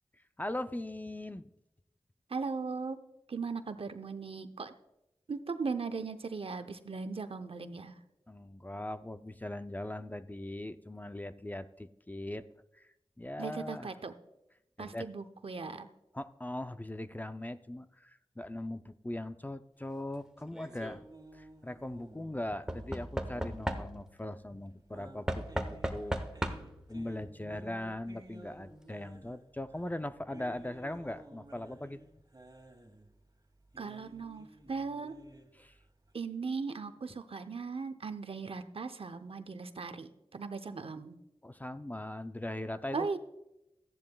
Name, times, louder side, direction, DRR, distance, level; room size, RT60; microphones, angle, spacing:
voice 1, 0.4-1.5 8.3-12.5 12.7-13.9 14.8-15.1 16.1-21.1 21.3-26.2 26.9-32.0 35.5-35.8 41.4-43.2, left 1 dB, 15° left, 11 dB, 0.4 m, -40 dB
voice 2, 2.3-3.0 3.3-4.7 5.3-8.0 13.4-14.1 14.8-15.9 33.8-35.1 36.1-41.2 42.9-43.2, right 4 dB, 65° right, 10 dB, 0.7 m, -38 dB
Knock / Wood, 20.5-21.0 22.7-24.2 25.3-26.9 27.9-28.0 28.2-28.3, equal, 5° right, 1.0 m, -36 dB
sound 1, 20.6-36.1, right 1 dB, 35° right, 1.8 m, -55 dB
14.0 x 10.5 x 2.3 m, 0.89 s
cardioid pair, 45°, 10 cm